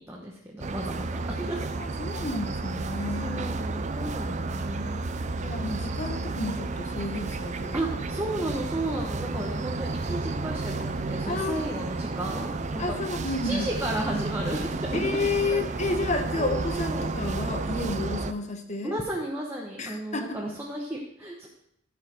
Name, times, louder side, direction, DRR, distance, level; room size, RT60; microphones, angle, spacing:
voice 1, 0.0-1.7 3.2-5.0 7.7-13.0 13.2-15.1 15.5-15.6 16.4-17.1 18.8-21.5, right 1 dB, 15° right, -2 dB, 1.1 m, -34 dB
sound 1, 0.6-18.3, right 3 dB, 40° right, 0.5 m, -32 dB
voice 2, 1.8-3.6 5.4-7.8 11.3-11.6 12.8-13.7 14.9-19.0 19.8-20.4, left 2 dB, 35° left, 5 dB, 1.1 m, -31 dB
15.0 x 5.8 x 4.4 m, 0.77 s
head